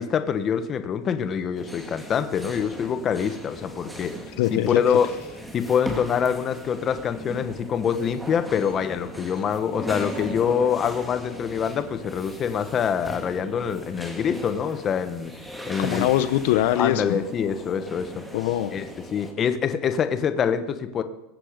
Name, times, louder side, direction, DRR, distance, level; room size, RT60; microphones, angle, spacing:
voice 1, 0.0-4.2 4.5-5.1 5.5-15.3 15.7-16.1 16.8-18.2 18.7-18.9 19.1-21.0, left 7 dB, 25° left, 9 dB, 1.2 m, -25 dB
sound 1, 1.5-19.3, equal, 5° right, 2.1 m, -38 dB
voice 2, 4.4-4.8 15.8-17.2 18.3-18.8, left 13 dB, 65° left, 11 dB, 0.8 m, -22 dB
22.5 x 7.7 x 5.1 m, 0.93 s
supercardioid pair, 135°, 0 cm